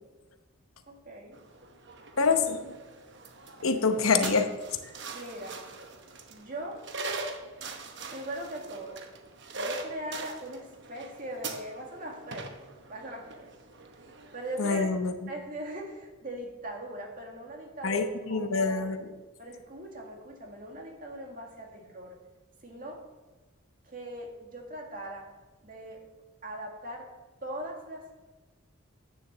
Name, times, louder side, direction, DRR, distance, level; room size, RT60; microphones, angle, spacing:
voice 1, 0.9-1.4 4.8-5.6 6.3-6.8 8.1-9.0 9.5-12.5 12.9-13.5 14.3-14.8 15.3-18.9 19.4-22.2 22.6-23.0 23.8-25.3 25.6-26.0 26.4-27.1 27.4-28.1, right 1 dB, 40° right, 1 dB, 2.0 m, -40 dB
sound 1, 1.3-14.9, right 3 dB, 55° right, 1.0 m, -42 dB
voice 2, 2.2-2.7 3.6-4.5 14.6-15.1 17.8-19.0, left 4 dB, 75° left, 7 dB, 0.9 m, -26 dB
9.2 x 7.0 x 6.7 m, 1.2 s
head